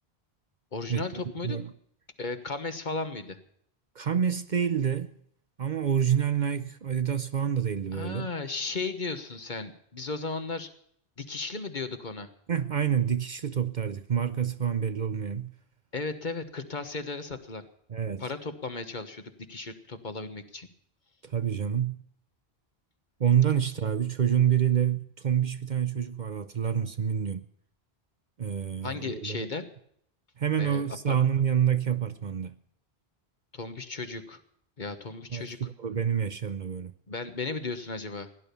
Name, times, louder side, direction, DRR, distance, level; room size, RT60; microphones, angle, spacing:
voice 1, 0.7-1.6 2.2-3.4 7.9-10.7 11.2-12.3 15.9-17.6 18.2-20.7 28.8-29.7 30.6-31.2 33.5-34.4 34.8-35.6 37.1-38.3, left 3 dB, 50° left, 1.4 m, -35 dB
voice 2, 4.0-5.1 5.6-8.3 12.5-15.5 17.9-18.2 21.2-22.0 23.2-27.4 28.4-29.4 30.4-32.5 35.3-36.9, right 8 dB, 50° right, 0.8 m, -27 dB
16.5 x 11.0 x 6.9 m
omnidirectional pair, 1.1 m